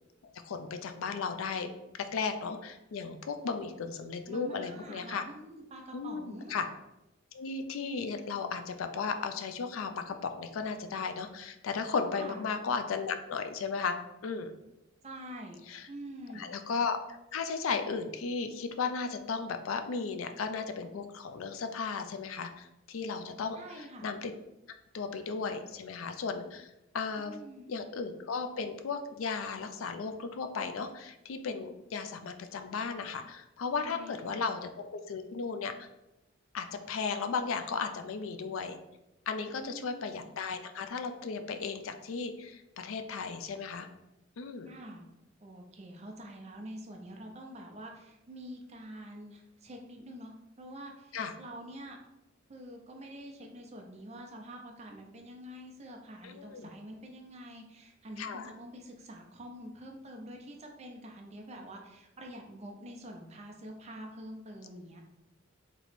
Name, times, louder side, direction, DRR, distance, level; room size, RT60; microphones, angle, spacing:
voice 1, 0.4-1.7 2.0-5.2 5.9-6.6 7.3-14.0 14.2-14.5 15.7-15.9 16.3-17.0 17.3-24.3 24.9-27.4 27.7-35.9 36.5-38.8 39.3-43.9 44.4-44.7 51.1-51.3 56.2-56.7 58.2-58.5, left 5 dB, 90° left, 8 dB, 0.4 m, -35 dB
voice 2, 4.3-6.5 12.1-12.4 15.0-15.6 15.9-16.5 23.5-24.1 27.2-27.7 33.8-34.5 39.5-40.3 44.6-45.1 45.4-52.0 52.5-65.0, right 1 dB, 35° right, 2 dB, 0.6 m, -46 dB
3.1 x 2.9 x 4.2 m, 0.91 s
head